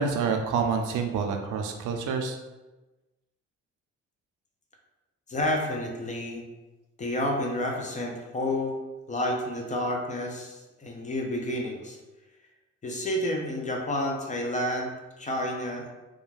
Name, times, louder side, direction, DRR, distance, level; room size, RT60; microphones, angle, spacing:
voice 1, 0.0-2.4, right 5 dB, 80° right, 4 dB, 0.5 m, -27 dB
voice 2, 5.3-6.4 7.0-8.8 9.1-12.0 12.8-15.9, left 1 dB, 25° left, 1 dB, 0.5 m, -30 dB
2.3 x 2.2 x 3.1 m, 1.1 s
cardioid pair, 90°, 30 cm